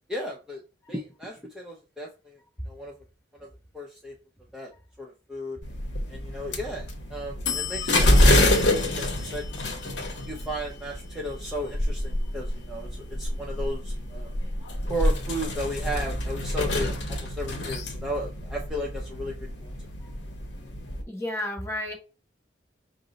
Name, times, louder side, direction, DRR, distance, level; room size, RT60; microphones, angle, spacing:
voice 1, 0.1-0.6 0.9-2.4 2.7-2.9 3.4-3.5 3.7-4.1 4.5-4.7 5.0-5.6 6.1-8.1 8.4-9.8 10.3-14.3 14.9-19.3 19.6-19.7, equal, 5° right, -3 dB, 0.5 m, -35 dB
sound 1, 5.6-21.0, left 1 dB, 75° left, 0.8 m, -27 dB
voice 2, 21.1-22.0, left 1 dB, 15° left, 0 dB, 0.9 m, -31 dB
5.2 x 2.0 x 3.8 m, 0.33 s
head